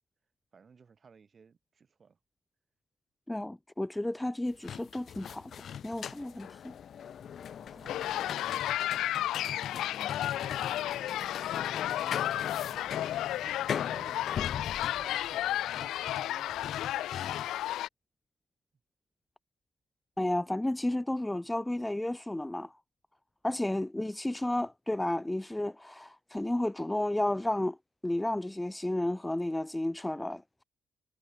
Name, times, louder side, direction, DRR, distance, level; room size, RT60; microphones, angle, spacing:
voice 1, 0.5-2.2 3.4-3.6 7.6-9.5 10.3-17.2, right 5 dB, 40° right, 4.1 m, -57 dB
voice 2, 3.3-5.5 5.8-6.7 20.2-22.7 23.4-27.8 28.0-30.4, left 1 dB, 10° left, 0.4 m, -32 dB
sound 1, 4.5-17.7, left 8 dB, 60° left, 2.0 m, -40 dB
sound 2, 7.7-13.5, right 11 dB, 70° right, 7.6 m, -67 dB
sound 3, 7.9-17.9, left 13 dB, 85° left, 0.3 m, -33 dB
cardioid pair, 90°, 0 cm